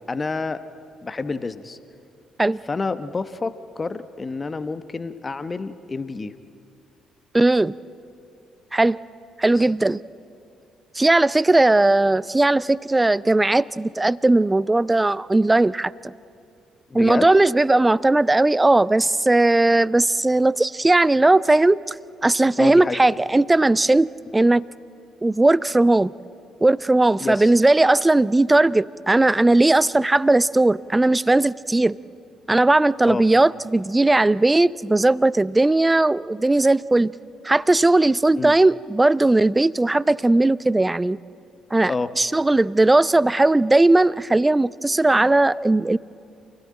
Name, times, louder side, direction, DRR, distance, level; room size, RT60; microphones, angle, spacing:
voice 1, 0.1-0.6 1.0-1.8 2.7-6.3 9.6-9.7 16.9-17.3 22.6-23.0 27.2-27.5 33.1-33.2 38.4-38.5 41.9-42.1, left 3 dB, 30° left, 13 dB, 1.0 m, -28 dB
voice 2, 7.3-7.7 8.7-9.0 9.4-10.0 10.9-16.1 16.9-21.9 22.2-24.1 24.3-24.6 25.2-26.1 26.6-32.0 32.5-37.1 37.4-41.2 41.7-46.0, right 2 dB, 15° right, 21 dB, 0.5 m, -18 dB
28.0 x 17.0 x 8.8 m, 2.5 s
figure-of-eight pair, 45°, 0 cm